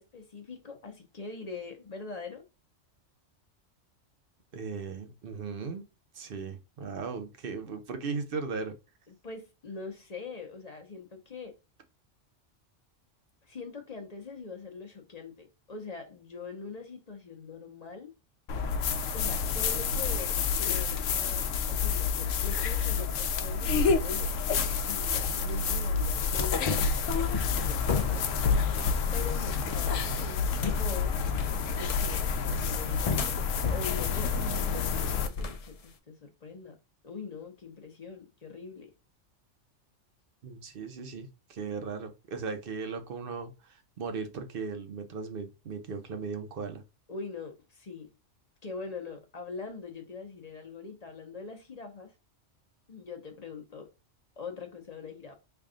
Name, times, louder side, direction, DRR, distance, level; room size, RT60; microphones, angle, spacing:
voice 1, 0.0-2.4 9.1-11.6 13.4-18.1 19.1-28.3 29.1-31.2 31.7-36.8 37.0-38.9 47.1-48.1 48.6-52.1 52.9-53.9 54.4-55.3, left 4 dB, 40° left, 0.8 m, -43 dB
voice 2, 4.5-5.9 6.1-8.7 40.4-46.8, right 5 dB, 50° right, 0.9 m, -37 dB
sound 1, 18.5-35.3, left 5 dB, 85° left, 0.9 m, -29 dB
sound 2, 26.5-35.9, left 5 dB, 65° left, 0.3 m, -36 dB
3.4 x 2.3 x 3.7 m
omnidirectional pair, 1.3 m